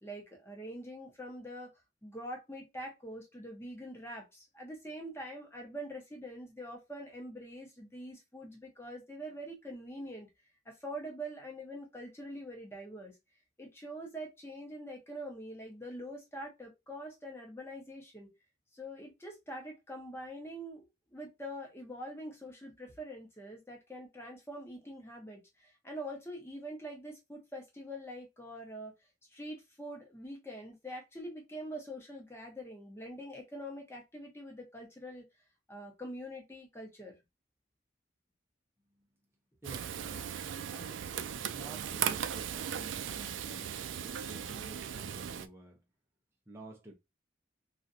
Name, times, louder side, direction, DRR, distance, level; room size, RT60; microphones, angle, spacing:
voice 1, 0.0-1.7 2.0-10.3 10.6-13.2 13.6-18.3 18.7-20.8 21.1-28.9 29.3-35.2 35.7-37.2, equal, 15° left, 0.9 m, -44 dB
voice 2, 39.6-41.1 41.4-45.8 46.5-46.9, right 1 dB, 15° right, 0.6 m, -51 dB
Frying (food), 39.6-45.5, right 9 dB, 80° right, 0.3 m, -37 dB
3.1 x 2.5 x 2.6 m
head